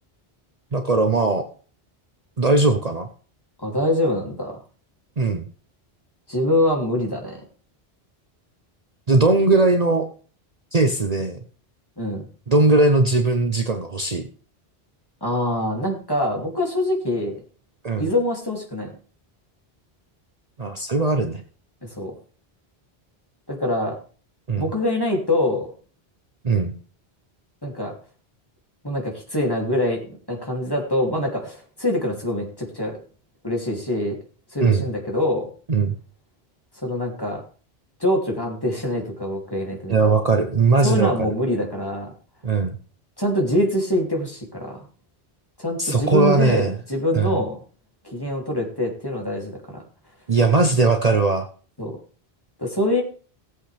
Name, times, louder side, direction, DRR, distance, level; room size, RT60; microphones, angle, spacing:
voice 1, 0.7-1.4 2.4-3.1 5.2-5.5 9.1-10.1 10.7-11.4 12.5-14.2 17.8-18.1 20.6-21.4 24.5-24.6 26.4-26.7 34.6-34.8 35.7-35.9 39.9-41.3 42.4-42.8 45.8-46.7 47.1-47.4 50.3-51.5, right 3 dB, 40° right, 5 dB, 1.0 m, -19 dB
voice 2, 3.6-4.6 6.3-7.4 12.0-12.3 15.2-17.4 18.0-18.9 21.8-22.1 23.5-24.0 24.6-25.7 27.6-27.9 28.8-30.0 30.3-33.0 33.4-34.2 34.5-35.5 36.8-37.4 38.0-39.9 40.8-42.1 43.2-44.9 45.6-47.6 48.0-49.9 51.8-52.0 52.6-53.0, left 1 dB, 20° left, 0 dB, 2.9 m, -24 dB
18.0 x 7.9 x 3.4 m, 0.40 s
omnidirectional pair, 1.1 m